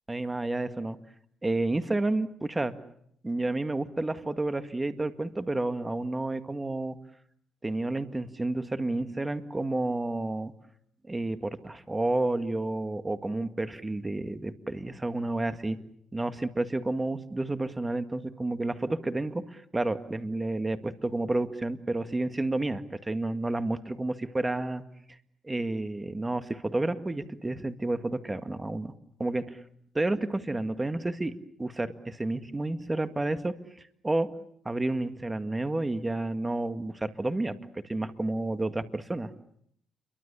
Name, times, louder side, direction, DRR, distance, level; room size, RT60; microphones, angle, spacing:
voice 1, 0.1-1.0 1.4-2.7 3.2-7.0 7.6-10.5 11.0-15.8 16.1-24.8 25.4-28.9 29.2-29.6 29.9-31.3 31.6-33.5 34.0-34.3 34.7-39.3, right 2 dB, 15° right, 9 dB, 1.9 m, -30 dB
29.0 x 23.5 x 7.0 m, 0.69 s
cardioid pair, 90°, 0 cm